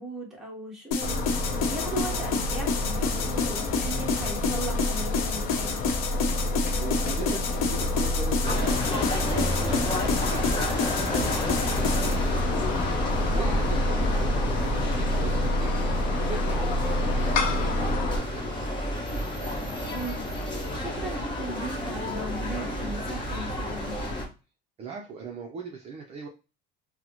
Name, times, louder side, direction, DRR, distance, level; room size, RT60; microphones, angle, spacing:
voice 1, 0.0-5.8 13.4-13.6 19.8-24.0, right 1 dB, ahead, -3 dB, 1.2 m, -38 dB
sound 1, 0.9-12.2, left 5 dB, 75° left, 0.8 m, -30 dB
sound 2, 1.0-18.2, left 1 dB, 40° left, 0.6 m, -28 dB
voice 2, 3.0-3.3 6.8-12.7 12.9-15.8 16.2-18.6 24.8-26.3, right 4 dB, 30° right, 1 dB, 0.5 m, -40 dB
sound 3, 8.4-24.2, left 1 dB, 20° left, 1.0 m, -31 dB
3.7 x 2.0 x 2.9 m, 0.31 s
cardioid pair, 140°, 21 cm